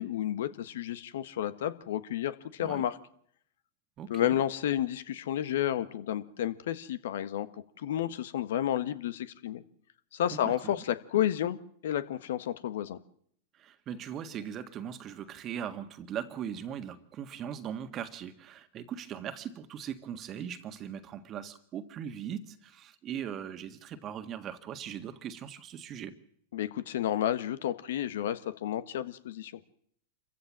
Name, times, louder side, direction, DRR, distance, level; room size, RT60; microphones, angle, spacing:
voice 1, 0.0-2.9 4.1-7.5 7.8-9.6 10.1-11.6 11.8-13.0 26.5-29.5, left 11 dB, 70° left, 13 dB, 1.3 m, -31 dB
voice 2, 4.0-4.4 10.3-10.8 13.5-26.2, right 9 dB, 35° right, 8 dB, 1.7 m, -40 dB
26.5 x 15.0 x 7.5 m, 0.67 s
hypercardioid pair, 105°, 0 cm